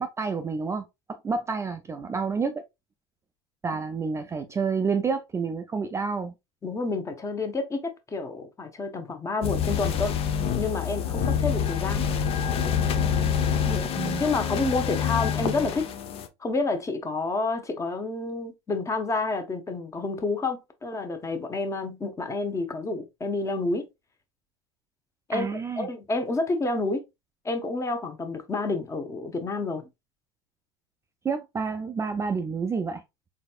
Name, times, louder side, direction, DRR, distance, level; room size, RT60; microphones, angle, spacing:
voice 1, 0.0-2.6 3.6-6.3 14.0-14.2 25.3-25.9 31.2-33.0, right 5 dB, 20° right, 0.4 m, -29 dB
voice 2, 6.6-10.1 10.6-12.0 13.6-13.8 14.2-15.9 16.4-23.8 25.3-25.5 25.8-27.0 27.4-29.8, left 3 dB, 20° left, 1.0 m, -29 dB
sound 1, 9.4-16.3, left 8 dB, 45° left, 0.7 m, -26 dB
4.0 x 3.4 x 2.4 m
hypercardioid pair, 85°, 14 cm